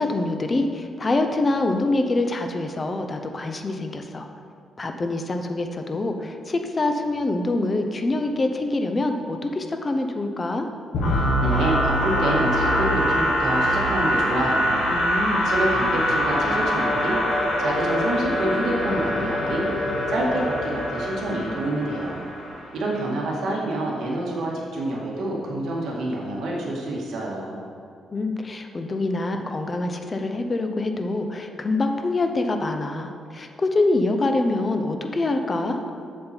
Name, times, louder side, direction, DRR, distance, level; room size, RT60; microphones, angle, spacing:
voice 1, 0.0-4.3 4.8-10.7 14.9-15.4 28.1-35.8, left 2 dB, 25° left, 5 dB, 0.7 m, -25 dB
sound 1, 10.9-22.7, equal, 65° left, 1.9 m, -24 dB
voice 2, 11.1-15.0 15.4-17.2 17.6-19.7 20.1-22.3 22.7-27.6, right 1 dB, 70° right, -3 dB, 1.9 m, -27 dB
7.6 x 7.3 x 4.5 m, 2.4 s
cardioid pair, 135°, 0 cm